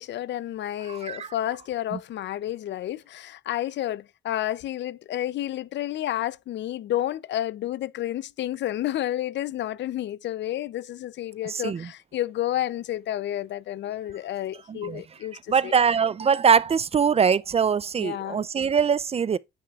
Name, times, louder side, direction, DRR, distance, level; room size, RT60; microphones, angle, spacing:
voice 1, 0.0-15.7 18.0-18.4, left 13 dB, 65° left, 0.5 m, -30 dB
voice 2, 0.9-1.3 1.9-2.0 11.4-11.9 14.7-15.0 15.5-19.4, right 6 dB, 30° right, 0.4 m, -23 dB
9.1 x 6.0 x 2.4 m
cardioid pair, 90°, 20 cm